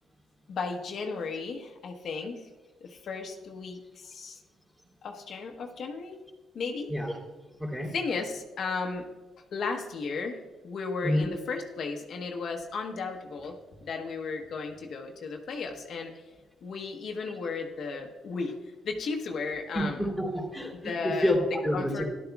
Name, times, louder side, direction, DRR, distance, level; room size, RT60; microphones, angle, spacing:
voice 1, 0.5-2.4 2.8-4.4 5.0-6.2 6.5-6.9 7.8-9.1 9.5-10.4 10.6-16.1 16.6-18.6 18.8-20.1 20.8-21.3 21.7-22.0, left 4 dB, 60° left, 2 dB, 1.0 m, -34 dB
voice 2, 7.6-7.9 11.0-11.3 19.7-22.0, equal, 10° right, -1 dB, 3.2 m, -28 dB
14.0 x 11.5 x 2.3 m, 1.3 s
cardioid pair, 90°, 0 cm